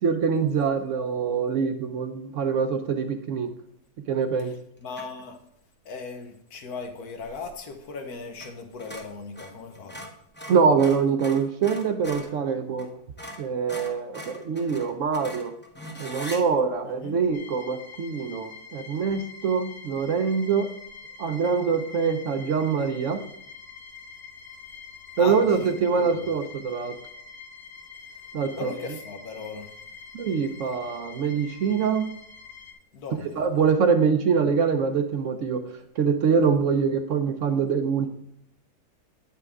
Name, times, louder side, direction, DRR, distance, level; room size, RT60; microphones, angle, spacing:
voice 1, 0.0-3.5 4.1-4.5 10.5-12.9 13.4-15.5 16.0-20.7 21.2-23.2 25.2-26.9 28.3-28.7 30.1-32.1 33.4-38.1, right 6 dB, 65° right, 8 dB, 0.9 m, -24 dB
voice 2, 0.5-0.9 4.4-5.4 5.8-10.1 16.8-17.2 25.2-26.3 28.5-29.7 30.6-30.7 32.9-33.4, left 4 dB, 75° left, 5 dB, 1.5 m, -38 dB
sound 1, 4.9-5.2 8.3-8.5 8.8-12.3 12.8-12.9 13.2-16.4, equal, 10° left, 0.6 m, -41 dB
sound 2, 17.3-32.7, left 5 dB, 60° left, 1.3 m, -45 dB
8.7 x 5.7 x 3.6 m, 0.71 s
omnidirectional pair, 1.6 m